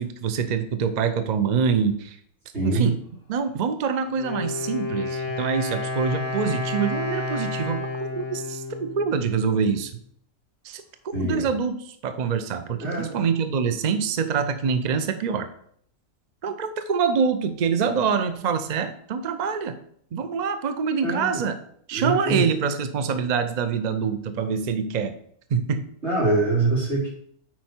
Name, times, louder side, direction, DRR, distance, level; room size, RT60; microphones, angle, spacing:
voice 1, 0.0-2.2 2.6-3.0 3.3-9.9 10.6-10.8 11.2-15.5 16.4-19.7 20.1-21.6 21.9-25.1 25.5-25.8, right 6 dB, 70° right, 9 dB, 0.4 m, -25 dB
voice 2, 2.5-2.9 11.1-11.5 12.8-13.2 21.0-21.4 21.9-22.4 26.0-27.1, right 2 dB, 45° right, -6 dB, 3.4 m, -24 dB
Wind instrument woodwind instrument, 4.1-9.8, left 3 dB, 75° left, 2.4 m, -31 dB
8.7 x 4.7 x 4.4 m, 0.65 s
omnidirectional pair, 1.6 m